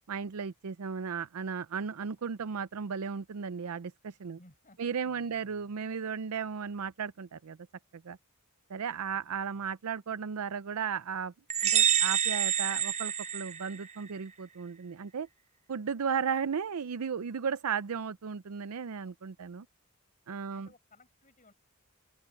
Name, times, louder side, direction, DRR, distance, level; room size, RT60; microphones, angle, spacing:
voice 1, 0.1-4.4 4.8-7.6 7.9-8.2 8.7-11.3 11.6-15.3 15.7-19.7 20.3-20.7, right 6 dB, 90° right, 0.5 m, -35 dB
voice 2, 4.4-5.7 9.1-9.7 20.5-21.5, left 2 dB, 40° left, 7.5 m, -61 dB
sound 1, 11.5-14.1, right 9 dB, 30° right, 0.7 m, -27 dB
open air
head